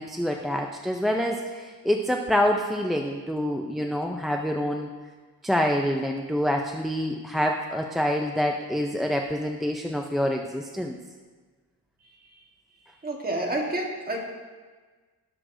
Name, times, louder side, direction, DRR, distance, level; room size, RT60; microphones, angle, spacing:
voice 1, 0.0-4.9 5.4-11.0, equal, ahead, 2 dB, 0.4 m, -26 dB
voice 2, 13.0-14.2, right 1 dB, 25° right, -2 dB, 1.4 m, -29 dB
17.5 x 6.3 x 2.6 m, 1.4 s
wide cardioid pair, 180°, 37 cm